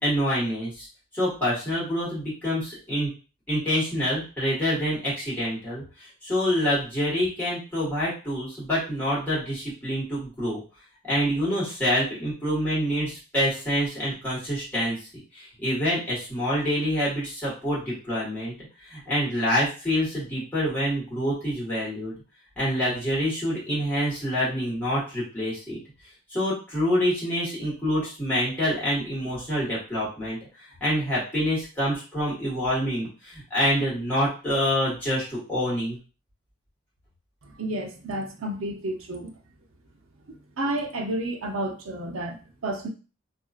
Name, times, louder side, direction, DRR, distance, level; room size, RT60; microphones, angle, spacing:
voice 1, 0.0-0.9 1.1-3.1 3.5-10.6 11.0-15.0 15.3-18.5 18.9-22.1 22.6-25.8 26.3-30.4 30.8-36.0, equal, 10° left, -9 dB, 1.5 m, -26 dB
voice 2, 37.4-39.4 40.3-42.9, right 1 dB, 80° right, 2 dB, 0.6 m, -31 dB
2.8 x 2.6 x 2.4 m, 0.34 s
head